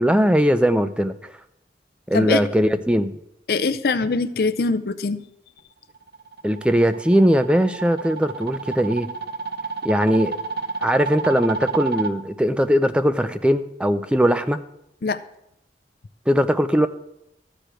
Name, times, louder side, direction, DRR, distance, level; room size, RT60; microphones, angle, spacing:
voice 1, 0.0-1.3 2.1-3.1 6.4-9.1 9.8-10.3 10.8-14.6 16.3-16.9, equal, 5° right, 11 dB, 0.4 m, -20 dB
voice 2, 3.5-5.2 15.0-15.2, left 4 dB, 60° left, 11 dB, 0.5 m, -22 dB
sound 1, 6.0-12.1, right 5 dB, 65° right, 0.7 m, -30 dB
13.0 x 5.0 x 7.6 m, 0.81 s
head